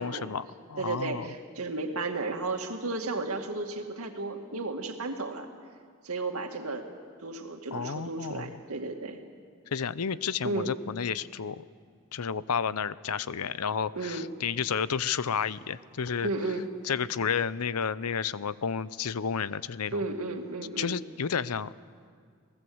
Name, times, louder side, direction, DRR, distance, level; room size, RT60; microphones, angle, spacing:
voice 1, 0.0-1.3 7.7-8.6 9.7-11.6 12.1-16.3 16.8-20.0 20.8-21.7, left 6 dB, 85° left, 17 dB, 0.6 m, -31 dB
voice 2, 0.8-5.5 6.0-6.9 7.2-9.2 10.4-10.7 13.9-14.3 16.2-16.7 19.9-21.0, right 2 dB, 75° right, 4 dB, 2.3 m, -33 dB
28.0 x 19.0 x 7.9 m, 2.1 s
head